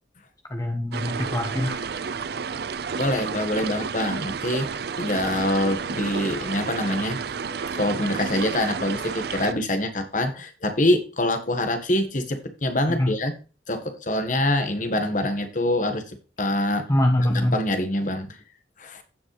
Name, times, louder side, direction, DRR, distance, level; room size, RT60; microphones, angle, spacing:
voice 1, 0.5-1.8 12.9-13.1 16.9-17.6, left 1 dB, 20° left, 3 dB, 1.1 m, -23 dB
sound 1, 0.9-9.5, right 6 dB, 60° right, 0.5 m, -31 dB
voice 2, 3.0-4.7 5.0-7.2 7.7-13.3 13.7-16.9 17.5-18.3 18.8-19.0, left 1 dB, 45° left, 7 dB, 1.6 m, -25 dB
16.0 x 5.3 x 3.3 m, 0.33 s
head